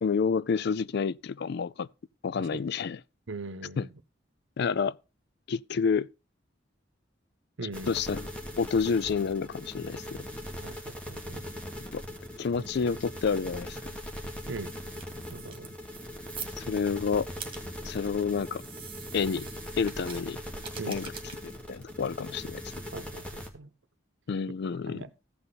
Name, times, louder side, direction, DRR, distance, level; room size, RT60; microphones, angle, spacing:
voice 1, 0.0-1.9 2.2-3.0 3.8-3.9 4.6-5.0 5.5-6.1 7.9-8.3 8.6-10.2 11.9-12.0 12.4-13.8 16.6-17.3 17.8-18.6 19.1-19.5 19.8-20.4 20.9-21.1 21.4-22.6 24.3-25.1, left 5 dB, 60° left, 0.4 m, -29 dB
voice 2, 3.3-3.9 7.6-7.9 10.6-11.5 12.6-12.7 14.5-14.8 15.3-15.7 20.8-21.0 22.9-23.7 24.9-25.1, right 3 dB, 75° right, 0.8 m, -40 dB
sound 1, 7.7-23.5, equal, 5° left, 1.8 m, -40 dB
sound 2, 13.9-23.1, right 7 dB, 30° right, 2.1 m, -47 dB
15.0 x 5.5 x 4.0 m
head